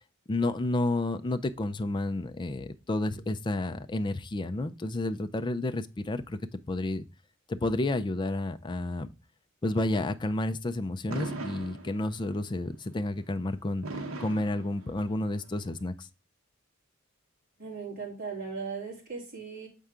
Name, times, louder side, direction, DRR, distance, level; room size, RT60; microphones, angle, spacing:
voice 1, 0.3-6.4 6.7-7.1 7.5-9.1 9.6-13.9 14.2-16.1, left 2 dB, 20° left, 0.4 m, -30 dB
Fireworks, 11.1-12.4 13.8-15.4, right 2 dB, 85° right, 1.0 m, -38 dB
voice 2, 17.6-19.7, right 5 dB, 45° right, 3.1 m, -38 dB
6.8 x 4.5 x 3.6 m
head